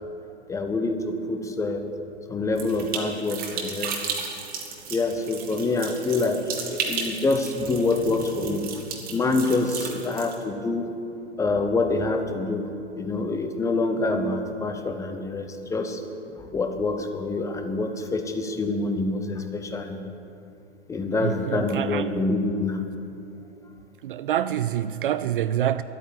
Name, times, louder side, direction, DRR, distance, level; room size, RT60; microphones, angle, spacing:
voice 1, 0.5-1.8 2.3-3.9 4.9-8.7 9.1-10.9 11.4-12.7 13.0-16.0 16.3-20.0 20.9-22.8, left 3 dB, 10° left, 0.8 m, -26 dB
sound 1, 2.6-10.4, right 6 dB, 25° right, 1.7 m, -34 dB
voice 2, 21.2-22.2 24.0-25.8, right 11 dB, 50° right, 0.4 m, -26 dB
12.0 x 8.9 x 9.0 m
figure-of-eight pair, 110°, 35 cm